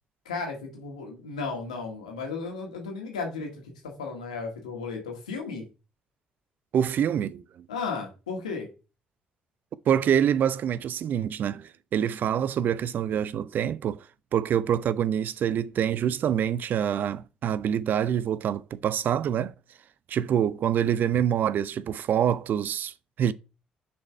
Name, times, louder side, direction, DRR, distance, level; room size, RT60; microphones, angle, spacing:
voice 1, 0.3-5.7 7.7-8.7, left 4 dB, 90° left, 1.8 m, -34 dB
voice 2, 6.7-7.7 9.9-14.1 14.3-19.5 20.1-23.3, right 9 dB, 55° right, 0.4 m, -26 dB
6.3 x 4.3 x 4.5 m
hypercardioid pair, 50°, 4 cm